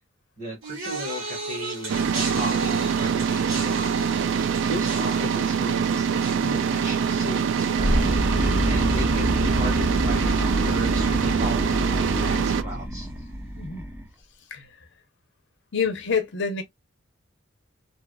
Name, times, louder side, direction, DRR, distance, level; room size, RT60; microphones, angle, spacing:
voice 1, 0.4-3.9 4.6-13.1, right 1 dB, 35° right, 1.6 m, -36 dB
sound 1, 0.6-10.0 10.3-10.8 11.7-11.8, right 3 dB, 85° right, 1.5 m, -36 dB
sound 2, 1.9-12.6, right 6 dB, 65° right, 0.3 m, -24 dB
sound 3, 7.8-14.0, equal, 10° right, 0.7 m, -26 dB
voice 2, 15.7-16.6, left 5 dB, 60° left, 0.7 m, -27 dB
2.8 x 2.4 x 2.2 m
head